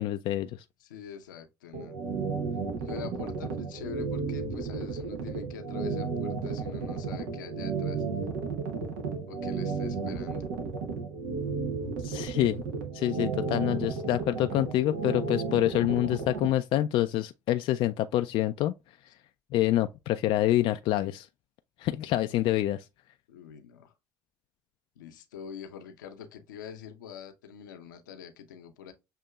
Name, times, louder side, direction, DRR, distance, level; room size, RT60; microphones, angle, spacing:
voice 1, 0.0-0.6 12.0-12.6 12.9-18.7 19.5-21.3 21.8-22.8, left 14 dB, 60° left, 0.3 m, -27 dB
voice 2, 0.8-2.0 2.8-8.0 9.3-10.4 23.3-23.9 25.0-28.9, left 8 dB, 90° left, 0.7 m, -44 dB
sound 1, 1.7-16.5, right 5 dB, 85° right, 1.0 m, -33 dB
6.7 x 2.8 x 2.3 m
hypercardioid pair, 60°, 10 cm